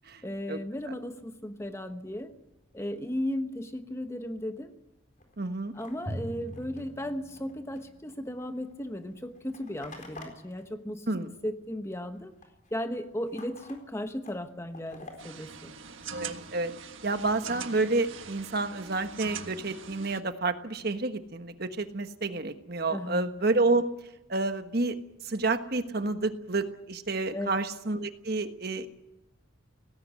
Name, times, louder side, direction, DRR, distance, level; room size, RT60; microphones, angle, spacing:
voice 1, 0.2-2.3 2.7-4.7 5.7-12.3 12.7-15.7 22.9-23.3 27.3-27.6, left 1 dB, 15° left, 8 dB, 1.1 m, -36 dB
sound 1, 5.2-11.8 12.0-16.6 17.0-19.3, left 2 dB, 40° left, 4.2 m, -53 dB
voice 2, 5.4-5.7 11.1-11.3 16.1-16.7 17.0-23.9 24.3-24.9 25.2-28.9, right 3 dB, 50° right, 8 dB, 1.3 m, -29 dB
Drum, 6.1-8.4, equal, 15° right, 7.0 m, -41 dB
sound 2, 15.2-20.2, right 6 dB, 70° right, 1.5 m, -42 dB
18.0 x 16.5 x 9.5 m, 0.91 s
head